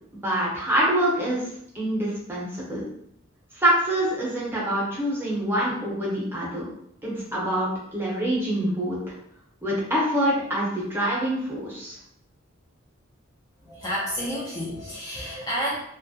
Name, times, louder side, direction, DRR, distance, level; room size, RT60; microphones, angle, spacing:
voice 1, 0.1-1.4 1.7-2.8 3.6-6.6 7.0-9.0 9.6-11.9, right 1 dB, 10° right, -6 dB, 0.7 m, -25 dB
voice 2, 13.7-15.8, equal, 20° left, -7 dB, 0.4 m, -30 dB
2.2 x 2.0 x 2.6 m, 0.73 s
head